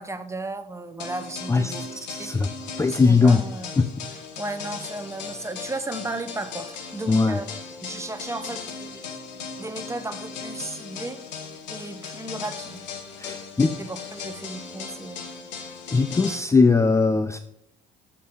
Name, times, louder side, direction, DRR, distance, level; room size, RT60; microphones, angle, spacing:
voice 1, 0.0-1.8 2.9-3.7 4.1-7.4 7.8-9.0 9.6-11.2 11.7-12.8 13.8-15.4, right 2 dB, 15° right, 10 dB, 0.9 m, -35 dB
sound 1, 1.0-16.4, left 5 dB, 85° left, 0.9 m, -38 dB
voice 2, 2.1-2.5 2.8-3.4 3.8-3.9 7.1-7.4 13.2-13.7 15.9-17.4, left 4 dB, 15° left, 11 dB, 0.4 m, -19 dB
7.2 x 4.5 x 6.9 m, 0.76 s
hypercardioid pair, 55°, 21 cm